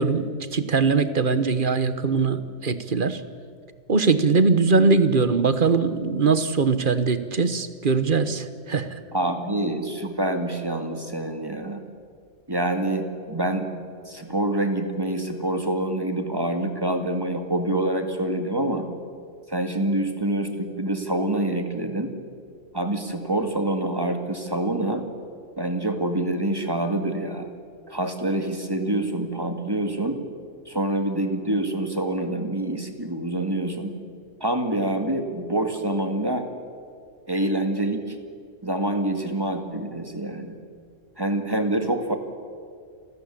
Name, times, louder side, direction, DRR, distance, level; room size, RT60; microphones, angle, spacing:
voice 1, 0.0-3.2 3.9-8.9, right 4 dB, 45° right, 12 dB, 1.3 m, -21 dB
voice 2, 9.1-11.8 12.5-13.7 14.1-18.9 19.5-22.1 22.7-25.0 25.6-27.5 27.9-30.2 30.7-33.9 34.4-36.5 37.3-38.2 38.6-40.6 41.2-42.2, right 1 dB, 20° right, 6 dB, 2.0 m, -26 dB
29.0 x 14.0 x 9.9 m, 2.2 s
omnidirectional pair, 1.2 m